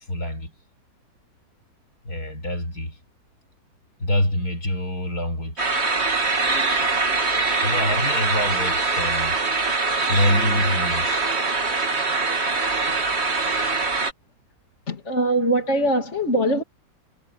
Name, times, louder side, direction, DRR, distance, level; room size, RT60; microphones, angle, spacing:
voice 1, 0.1-0.5 2.0-3.0 4.0-5.7 7.6-9.4 10.1-11.3, left 1 dB, 75° left, 7.3 m, -25 dB
sound 1, 5.6-14.1, right 3 dB, 45° right, 2.2 m, -23 dB
voice 2, 14.9-16.6, right 1 dB, 45° left, 3.1 m, -22 dB
omnidirectional pair, 1.6 m